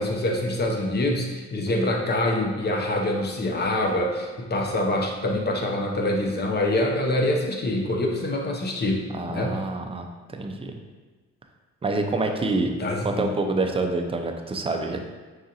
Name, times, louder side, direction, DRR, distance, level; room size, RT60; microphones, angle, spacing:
voice 1, 0.0-9.6 12.8-13.3, left 1 dB, 35° left, 1 dB, 0.6 m, -25 dB
voice 2, 9.1-10.7 11.8-12.7 13.0-15.1, right 2 dB, 20° right, 4 dB, 0.4 m, -27 dB
4.7 x 2.5 x 2.8 m, 1.3 s
cardioid pair, 90°, 30 cm